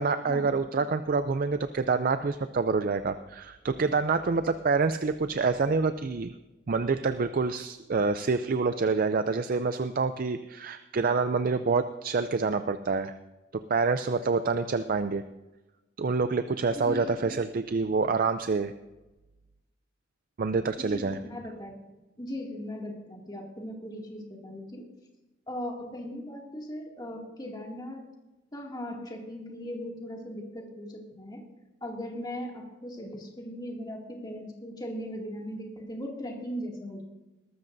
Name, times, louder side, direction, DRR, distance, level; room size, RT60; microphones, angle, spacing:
voice 1, 0.0-6.3 6.7-13.1 13.5-15.2 16.0-18.7 20.4-21.2, right 4 dB, 45° right, 10 dB, 0.4 m, -27 dB
voice 2, 16.7-17.1 20.8-21.8 22.2-24.8 25.5-28.0 28.5-31.4 31.8-37.0, equal, 20° left, -1 dB, 2.4 m, -38 dB
20.5 x 13.0 x 2.7 m, 1.1 s
head